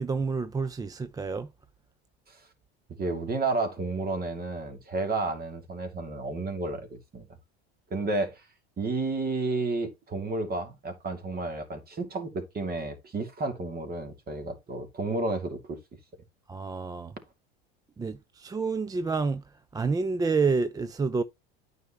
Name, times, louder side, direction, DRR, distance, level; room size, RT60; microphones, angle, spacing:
voice 1, 0.0-1.5 16.5-17.1 18.0-21.2, right 4 dB, 10° right, 0.4 m, -29 dB
voice 2, 3.0-7.3 7.9-8.4 8.8-15.8, right 3 dB, 30° right, 2.6 m, -31 dB
9.4 x 5.5 x 3.0 m
supercardioid pair, 100°, 30 cm